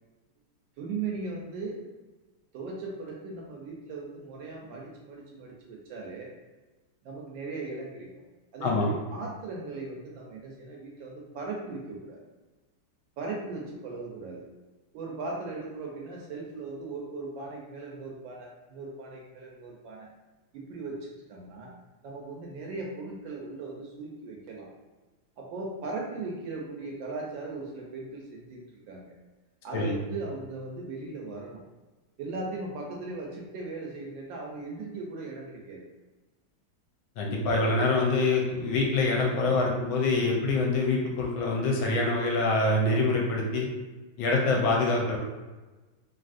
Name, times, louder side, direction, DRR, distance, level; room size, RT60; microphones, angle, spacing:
voice 1, 0.8-1.8 2.5-6.3 7.0-8.1 8.5-12.2 13.2-14.4 14.9-20.1 20.5-21.7 22.0-24.7 25.4-28.6 28.9-29.1 29.6-31.6 32.2-35.9 38.2-38.3, right 3 dB, 75° right, -2 dB, 1.2 m, -38 dB
voice 2, 37.2-43.7 44.2-45.2, left 3 dB, 75° left, -1 dB, 1.3 m, -25 dB
3.3 x 2.6 x 2.4 m, 1.2 s
omnidirectional pair, 2.3 m